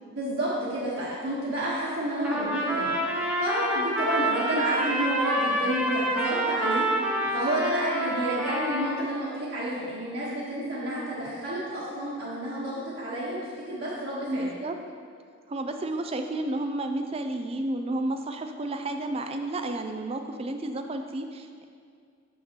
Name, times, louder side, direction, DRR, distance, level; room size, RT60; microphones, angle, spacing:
voice 1, 0.2-13.4 13.7-14.5, right 1 dB, 65° right, -11 dB, 1.5 m, -30 dB
Trumpet, 2.2-9.0, right 1 dB, 5° right, 0.9 m, -27 dB
voice 2, 14.3-14.8 15.5-21.6, right 2 dB, 30° right, 6 dB, 0.4 m, -31 dB
7.2 x 7.0 x 3.0 m, 2.2 s
head